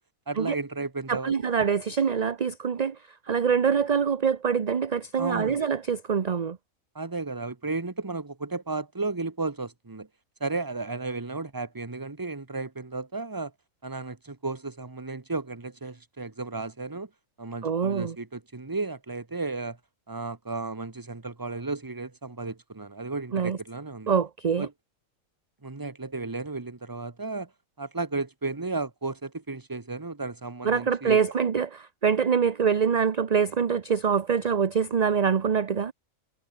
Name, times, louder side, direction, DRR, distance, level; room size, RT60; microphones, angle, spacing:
voice 1, 0.3-1.3 5.2-5.6 6.9-10.1 10.4-13.5 13.8-17.1 17.4-19.8 20.1-24.1 24.6-24.7 25.6-27.5 27.8-31.2, right 3 dB, 15° right, 1.2 m, -34 dB
voice 2, 1.1-3.0 3.3-6.6 17.6-18.2 23.3-23.6 24.1-24.7 30.6-35.9, right 6 dB, 35° right, 0.8 m, -25 dB
omnidirectional pair, 1.4 m